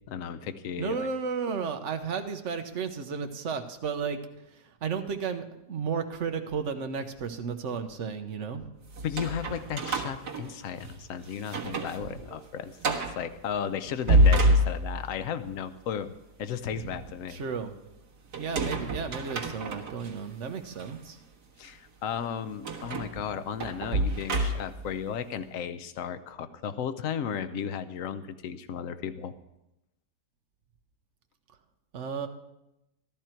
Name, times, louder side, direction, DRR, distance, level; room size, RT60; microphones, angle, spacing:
voice 1, 0.1-1.1 9.0-16.1 16.4-17.4 21.6-29.3, left 8 dB, 60° left, 10 dB, 1.0 m, -35 dB
voice 2, 0.8-4.2 4.5-8.7 12.0-12.2 16.8-16.9 17.3-17.7 18.4-21.2 31.9-32.3, right 6 dB, 50° right, 7 dB, 1.1 m, -33 dB
sound 1, 8.9-11.0 11.4-12.0 12.3-12.4 12.8-13.2 13.8-15.2 18.3-20.1 20.8-20.9 22.7-24.9, right 1 dB, 70° right, 2.0 m, -27 dB
13.5 x 13.0 x 4.5 m, 0.89 s
omnidirectional pair, 1.8 m